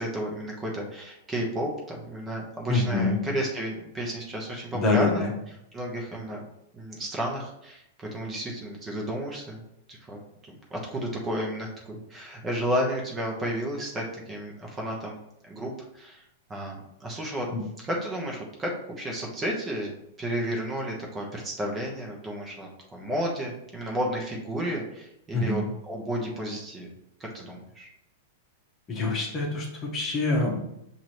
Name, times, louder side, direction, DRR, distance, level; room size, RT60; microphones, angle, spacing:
voice 1, 0.0-5.3 5.7-6.4 6.7-10.2 10.4-15.2 15.4-16.2 16.5-17.5 17.9-18.7 19.0-26.9 27.3-27.9, equal, 20° right, -1 dB, 1.0 m, -32 dB
voice 2, 2.7-3.2 4.7-5.3 17.5-17.6 25.3-25.6 28.9-30.7, left 3 dB, 25° left, -1 dB, 1.2 m, -25 dB
6.0 x 2.8 x 3.1 m, 0.82 s
hypercardioid pair, 130°, 0 cm